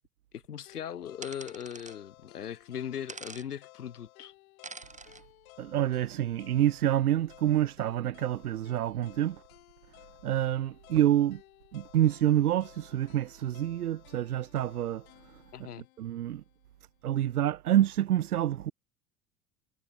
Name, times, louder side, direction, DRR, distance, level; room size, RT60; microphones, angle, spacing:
voice 1, 0.3-4.3 15.5-15.9, left 9 dB, 80° left, 2.3 m, -39 dB
sound 1, 0.7-16.8, left 20 dB, 65° left, 5.9 m, -57 dB
sound 2, 1.2-2.0 3.1-3.5 4.6-5.2, right 4 dB, 15° right, 7.0 m, -45 dB
voice 2, 5.6-9.4 10.2-11.4 11.7-15.4 16.0-16.4 17.0-18.7, right 12 dB, 75° right, 2.0 m, -27 dB
figure-of-eight pair, 80°, 46 cm